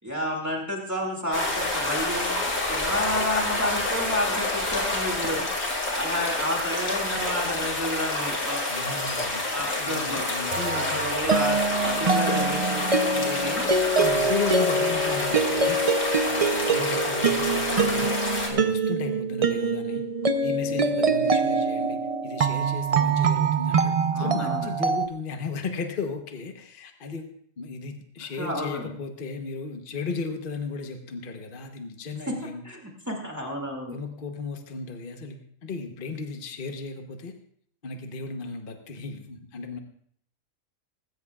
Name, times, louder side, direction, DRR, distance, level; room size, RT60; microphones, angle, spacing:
voice 1, 0.0-2.3 2.7-5.5 5.9-8.7 9.5-10.2 10.7-12.8 13.1-13.7 24.1-24.7 28.4-28.9 32.3-32.4 32.6-34.0, left 1 dB, 10° right, 0 dB, 2.3 m, -31 dB
sound 1, 1.3-18.5, left 2 dB, 65° left, 2.9 m, -28 dB
voice 2, 8.7-9.5 9.7-11.0 14.0-15.8 16.3-20.1 20.4-27.3 27.6-32.6 33.9-37.3 37.8-39.8, left 4 dB, 40° left, 5 dB, 1.1 m, -35 dB
sound 2, 10.5-25.1, right 4 dB, 40° right, 0.5 m, -24 dB
19.5 x 16.0 x 2.4 m, 0.63 s
omnidirectional pair, 1.5 m